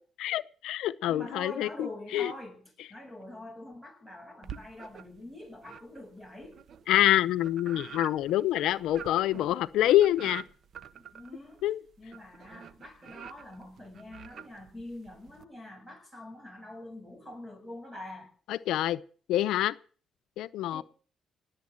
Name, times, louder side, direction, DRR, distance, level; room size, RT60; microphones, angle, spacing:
voice 1, 0.2-1.7 2.1-2.3 6.9-10.4 11.6-11.8 18.5-19.0 19.3-19.7 20.4-20.8, left 13 dB, 85° left, 0.6 m, -26 dB
voice 2, 1.1-6.6 10.9-11.6 12.0-18.3 20.7-20.8, left 1 dB, 10° right, 7.9 m, -45 dB
sound 1, 4.4-5.2 5.6-15.4, right 8 dB, 60° right, 1.0 m, -47 dB
19.0 x 8.2 x 7.7 m
cardioid pair, 90°, 0 cm